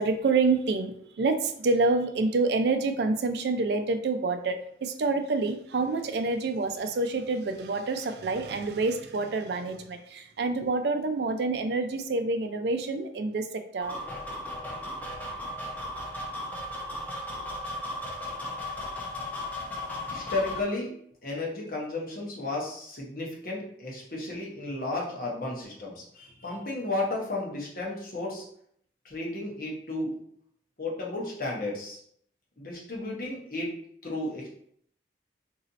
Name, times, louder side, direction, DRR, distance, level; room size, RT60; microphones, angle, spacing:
voice 1, 0.0-14.0, right 3 dB, 70° right, 8 dB, 0.4 m, -27 dB
sound 1, 13.8-20.6, left 1 dB, 10° left, 0.6 m, -36 dB
voice 2, 20.0-20.9 21.2-28.4 29.0-30.2 30.8-32.0 32.6-33.7 34.0-34.5, left 2 dB, 50° left, -3 dB, 1.0 m, -33 dB
3.1 x 2.7 x 3.9 m, 0.67 s
head